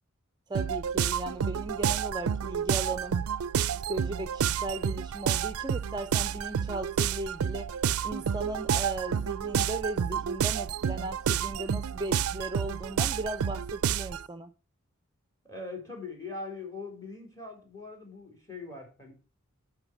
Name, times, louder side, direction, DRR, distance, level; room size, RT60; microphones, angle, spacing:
voice 1, 0.5-3.2 3.7-7.8 8.0-14.5, right 2 dB, 20° right, 0.6 m, -37 dB
sound 1, 0.5-14.3, right 8 dB, 90° right, 0.4 m, -30 dB
voice 2, 15.4-19.1, left 3 dB, 15° left, 4.1 m, -41 dB
11.5 x 5.4 x 6.2 m
head